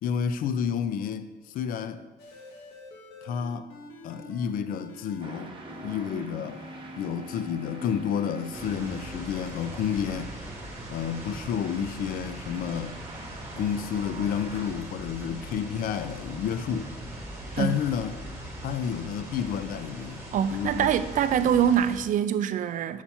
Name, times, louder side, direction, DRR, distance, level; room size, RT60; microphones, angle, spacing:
voice 1, 0.0-2.0 3.2-3.7 4.0-6.6 7.0-10.4 10.9-13.0 13.6-16.9 17.6-18.2 18.6-21.0, left 8 dB, 55° left, 0.4 m, -30 dB
sound 1, 2.2-5.3 5.7-9.2, equal, 80° left, 1.2 m, -45 dB
sound 2, 5.2-14.7, right 3 dB, 30° right, 1.0 m, -46 dB
sound 3, 8.5-22.0, right 1 dB, 15° right, 1.7 m, -40 dB
voice 2, 20.3-23.0, right 9 dB, 50° right, 0.4 m, -24 dB
5.9 x 4.3 x 5.5 m
cardioid pair, 110°, 17 cm